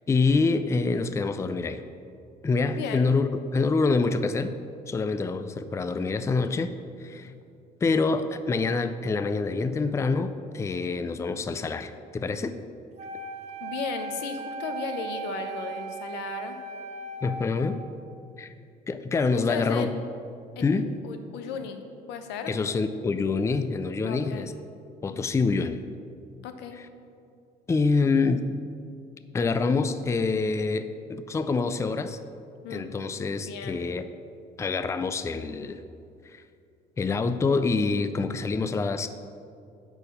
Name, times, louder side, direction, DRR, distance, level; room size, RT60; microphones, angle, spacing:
voice 1, 0.1-1.8 2.4-4.6 4.9-6.7 7.0-7.3 7.8-12.6 17.2-17.8 18.4-18.5 18.9-19.9 20.6-20.9 22.5-24.5 25.0-25.8 27.7-28.5 29.3-32.2 32.7-34.1 34.6-35.8 36.3-36.4 37.0-39.1, left 4 dB, 15° left, 11 dB, 0.4 m, -26 dB
voice 2, 2.7-3.1 13.6-16.6 19.3-19.9 20.6-20.7 21.0-21.8 22.1-22.5 24.0-24.5 26.4-26.8 32.6-32.9 33.5-33.8, left 6 dB, 90° left, 7 dB, 0.8 m, -35 dB
Wind instrument woodwind instrument, 13.0-18.1, right 4 dB, 40° right, 1.0 m, -37 dB
10.5 x 4.2 x 6.7 m, 2.4 s
cardioid pair, 110°, 17 cm